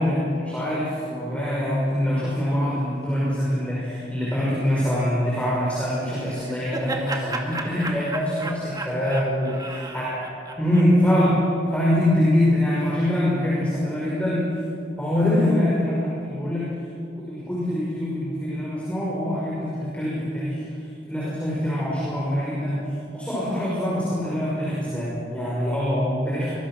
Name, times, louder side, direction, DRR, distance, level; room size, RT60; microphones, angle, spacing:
voice 1, 0.0-9.6 9.9-10.2 10.6-14.6 15.0-16.8 17.2-20.6 21.1-26.5, left 1 dB, 5° left, -7 dB, 5.9 m, -24 dB
Laughter, 6.1-11.3, right 2 dB, 20° right, 2.3 m, -34 dB
25.0 x 22.5 x 6.4 m, 2.5 s
head